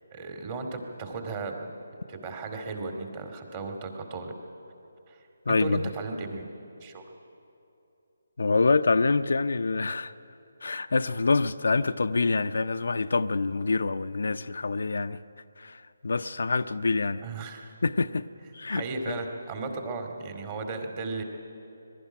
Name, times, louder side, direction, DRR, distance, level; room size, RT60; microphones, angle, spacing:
voice 1, 0.1-1.7 2.1-4.3 5.1-5.2 5.5-6.5 6.8-7.0 17.2-17.7 18.7-21.2, right 3 dB, 30° right, 2.3 m, -35 dB
voice 2, 5.5-5.8 8.4-10.1 10.6-15.2 15.6-17.2 17.8-18.3 18.5-19.1, left 3 dB, 65° left, 0.6 m, -26 dB
21.5 x 12.5 x 9.9 m
figure-of-eight pair, 150°, 0 cm